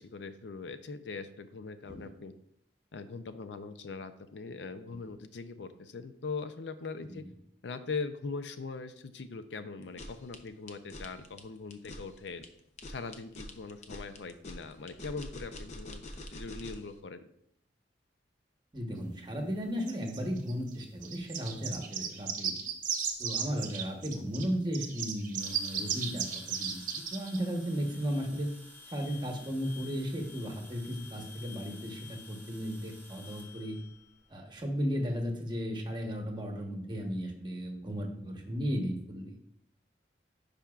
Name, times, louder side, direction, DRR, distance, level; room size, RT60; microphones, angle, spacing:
voice 1, 0.0-2.3 2.9-7.2 7.6-12.4 12.9-16.0 16.3-17.2, left 4 dB, 75° left, 10 dB, 0.5 m, -41 dB
sound 1, 9.8-16.9, left 1 dB, 40° left, 0.6 m, -45 dB
voice 2, 18.7-22.6 23.2-28.5 28.9-33.8 34.3-39.4, equal, 25° right, 2 dB, 1.1 m, -35 dB
sound 2, 19.9-24.4 24.7-27.4, right 7 dB, 50° right, 0.9 m, -35 dB
sound 3, 25.4-34.6, left 3 dB, 10° left, 1.0 m, -52 dB
10.0 x 5.2 x 2.4 m, 0.70 s
head